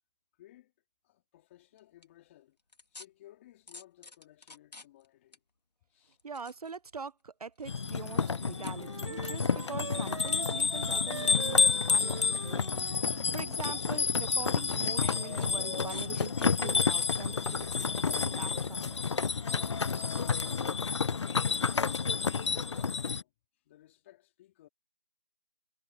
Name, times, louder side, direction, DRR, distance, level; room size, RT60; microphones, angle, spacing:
voice 1, 0.4-0.7 1.0-2.6 2.9-5.4 5.9-6.2 20.4-23.3 23.6-24.7, left 14 dB, 20° left, 3.6 m, -59 dB
sound 1, 1.8-2.0 2.7-3.1 3.7-5.1 5.3-5.4 6.1-7.1 7.6-8.0 8.5-8.7 9.0-9.7 10.5-11.3 11.6-11.7 12.1-12.2 12.6-12.7 13.5-13.6 14.3-14.4 15.3-17.1 17.5-17.6, left 3 dB, 85° left, 2.2 m, -50 dB
voice 2, 6.2-11.6 11.9-12.6 12.9-19.0, right 5 dB, 65° right, 0.7 m, -43 dB
sound 2, 7.7-23.2, left 5 dB, 45° left, 0.6 m, -30 dB
Wind instrument woodwind instrument, 8.0-13.3, right 5 dB, 50° right, 3.5 m, -43 dB
figure-of-eight pair, 165°, 21 cm